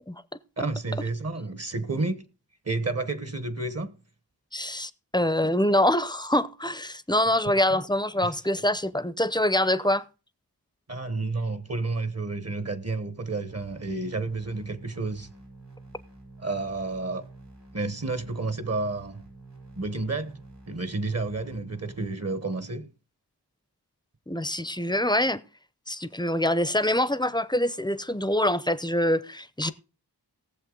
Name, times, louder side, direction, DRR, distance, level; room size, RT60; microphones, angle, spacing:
voice 1, 0.6-2.3 2.6-4.0 7.4-7.8 8.2-8.3 10.9-15.3 16.4-17.3 17.7-19.2 19.8-20.4 20.7-22.9 29.6-29.7, right 3 dB, 40° right, 1.1 m, -31 dB
voice 2, 4.5-10.0 24.3-25.4 25.9-29.7, left 1 dB, 10° left, 0.7 m, -25 dB
sound 1, 13.5-22.1, right 2 dB, 85° right, 7.1 m, -48 dB
18.5 x 7.3 x 3.8 m
wide cardioid pair, 55°, 40 cm